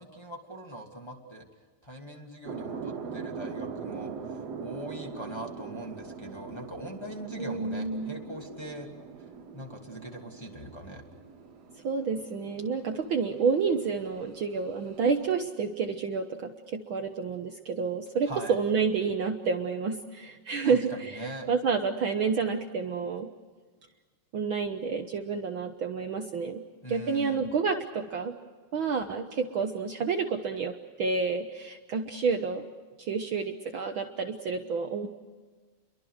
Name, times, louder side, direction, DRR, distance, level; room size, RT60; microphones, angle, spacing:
voice 1, 0.0-1.4 1.8-8.9 9.2-9.3 9.5-11.0 18.3-18.6 20.6-21.5 26.8-27.5, right 1 dB, 10° left, 0 dB, 2.0 m, -41 dB
sound 1, 2.4-15.3, right 5 dB, 55° right, 2.5 m, -42 dB
voice 2, 7.4-8.2 11.8-23.3 24.3-26.6 26.9-28.3 28.7-32.6 33.0-35.1, right 5 dB, 85° right, 5 dB, 1.1 m, -29 dB
29.5 x 23.0 x 6.5 m, 1.4 s
omnidirectional pair, 3.9 m